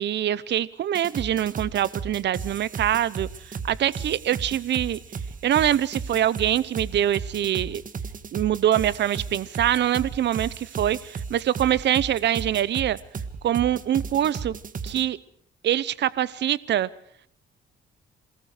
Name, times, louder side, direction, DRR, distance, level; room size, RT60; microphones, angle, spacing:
voice 1, 0.0-5.0 5.4-7.8 8.3-13.0 13.4-14.5 14.8-15.2 15.6-16.9, right 11 dB, 60° right, 20 dB, 0.8 m, -24 dB
sound 1, 0.9-15.0, right 5 dB, 45° right, 1.7 m, -35 dB
27.5 x 19.0 x 5.0 m, 0.64 s
cardioid pair, 90°, 20 cm